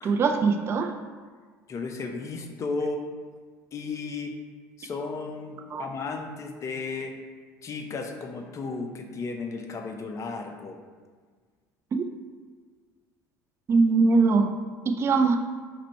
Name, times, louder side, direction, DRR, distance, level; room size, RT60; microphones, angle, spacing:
voice 1, 0.0-0.9 5.7-5.8 12.0-12.1 13.7-14.5 14.9-15.4, right 4 dB, 35° right, 4 dB, 0.4 m, -21 dB
voice 2, 1.7-3.0 3.7-4.3 4.8-7.2 7.6-10.8, left 4 dB, 40° left, 4 dB, 0.6 m, -34 dB
4.3 x 2.5 x 4.3 m, 1.5 s
hypercardioid pair, 75°, 8 cm